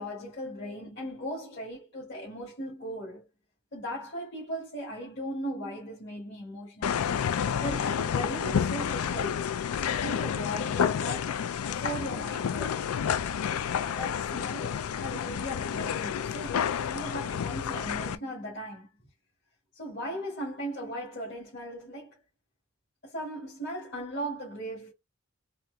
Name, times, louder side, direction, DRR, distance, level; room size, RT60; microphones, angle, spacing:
voice 1, 0.0-3.3 3.7-7.0 7.6-9.5 9.8-11.4 11.7-12.9 13.8-18.9 19.7-22.2 23.0-24.9, equal, 50° left, 1.8 m, -38 dB
sound 1, 6.8-18.1, left 8 dB, 85° left, 0.4 m, -30 dB
4.3 x 2.5 x 2.2 m
head